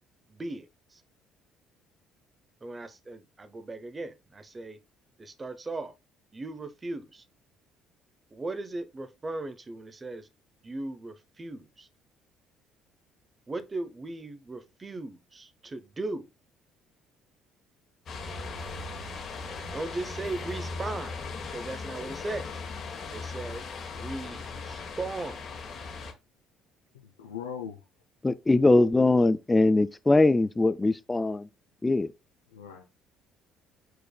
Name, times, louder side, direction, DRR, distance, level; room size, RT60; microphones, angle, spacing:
voice 1, 0.3-0.7 0.9-1.0 2.6-4.8 5.2-5.9 6.3-7.2 8.3-10.3 10.6-11.9 13.5-16.3 19.7-21.3 21.5-22.6 23.1-25.4, right 2 dB, 25° right, 0.8 m, -37 dB
sound 1, 18.1-26.1, left 4 dB, 50° left, 1.2 m, -38 dB
voice 2, 26.9-27.8 32.5-32.8, left 8 dB, 85° left, 0.6 m, -39 dB
voice 3, 28.2-31.5 31.8-32.1, left 2 dB, 20° left, 0.4 m, -22 dB
4.7 x 4.7 x 2.2 m
hypercardioid pair, 55°, 0 cm